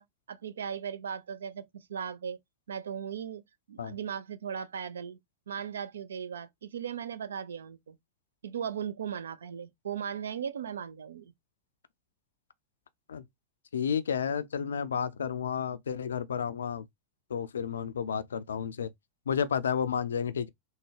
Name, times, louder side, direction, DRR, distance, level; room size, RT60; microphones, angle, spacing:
voice 1, 0.0-2.4 2.7-3.4 3.7-5.2 5.5-8.0 8.4-11.3, right 8 dB, 65° right, 0.3 m, -37 dB
voice 2, 13.7-16.9 17.3-18.9 19.3-20.5, left 7 dB, 70° left, 0.3 m, -31 dB
3.4 x 2.1 x 3.2 m
figure-of-eight pair, 90°, 0 cm